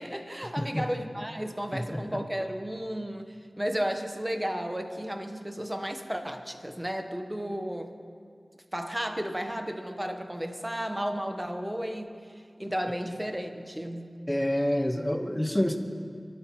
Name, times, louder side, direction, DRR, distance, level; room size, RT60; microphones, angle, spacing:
voice 1, 0.0-8.0 8.7-12.3 12.6-14.2, equal, 15° right, 6 dB, 1.2 m, -33 dB
voice 2, 0.6-0.9 1.7-2.0 14.3-15.8, left 1 dB, 15° left, 5 dB, 1.3 m, -27 dB
24.0 x 13.0 x 3.2 m, 2.2 s
wide cardioid pair, 45°, 0 cm